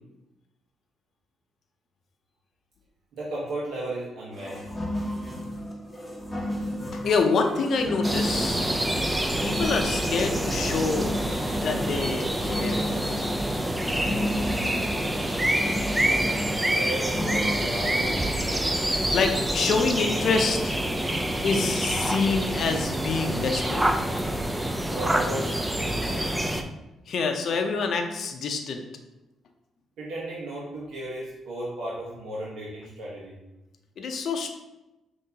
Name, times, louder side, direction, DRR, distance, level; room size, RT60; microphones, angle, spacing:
voice 1, 3.1-4.6 16.6-18.2 20.0-20.6 24.9-26.3 30.0-33.4, right 1 dB, 80° right, -6 dB, 0.9 m, -35 dB
sound 1, 4.3-17.6, left 1 dB, 10° left, 0.9 m, -33 dB
voice 2, 6.9-8.6 9.4-11.1 11.6-13.2 19.1-20.8 21.4-23.9 27.1-28.8 34.0-34.5, left 4 dB, 60° left, 5 dB, 0.6 m, -26 dB
sound 2, 8.0-26.6, right 1 dB, 10° right, 0.4 m, -27 dB
5.6 x 2.7 x 2.8 m, 0.99 s
cardioid pair, 90°, 0 cm